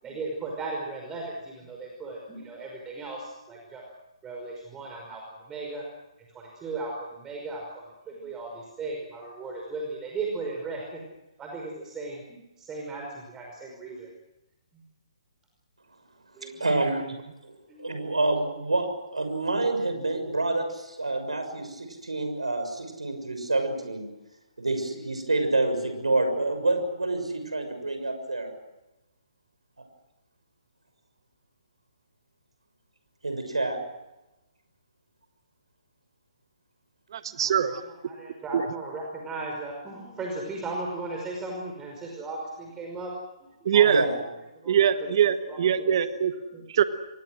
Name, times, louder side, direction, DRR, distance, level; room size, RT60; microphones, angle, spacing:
voice 1, 0.0-3.8 4.2-5.8 6.3-11.0 11.4-14.1 14.7-14.8 16.3-16.6 17.7-17.8 37.3-43.1 43.4-44.1 44.6-45.0 45.5-45.9 46.5-46.6, right 3 dB, 15° right, 0 dB, 5.4 m, -37 dB
voice 2, 16.6-17.1 17.4-17.5 17.8-18.9 19.1-24.1 24.6-28.5 33.2-33.8 43.8-44.2, right 2 dB, 85° right, 6 dB, 6.6 m, -27 dB
voice 3, 37.1-37.8 38.5-38.6 43.6-44.0 44.7-46.3 46.7-46.8, right 9 dB, 50° right, 10 dB, 1.6 m, -22 dB
29.5 x 23.5 x 6.4 m, 0.98 s
figure-of-eight pair, 135°, 3 cm